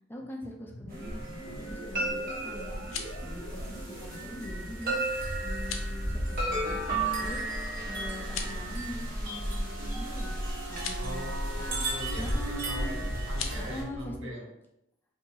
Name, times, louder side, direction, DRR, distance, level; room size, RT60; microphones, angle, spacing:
voice 1, 0.1-1.2 1.6-2.8 3.2-5.0 5.4-10.3 10.7-11.3 11.7-11.8 12.2-12.9 13.5-14.3, equal, 10° left, 0 dB, 0.4 m, -42 dB
sound 1, 0.7-10.8 12.0-14.2, equal, 45° left, 0.8 m, -48 dB
sound 2, 0.9-13.8, right 1 dB, 45° right, 1.1 m, -33 dB
sound 3, 2.7-3.3 5.5-5.9 8.2-8.7 10.7-11.0 13.3-13.6, left 7 dB, 80° left, 0.5 m, -38 dB
voice 2, 10.7-14.5, left 1 dB, 75° right, -2 dB, 1.1 m, -41 dB
2.8 x 2.6 x 4.4 m, 0.83 s
head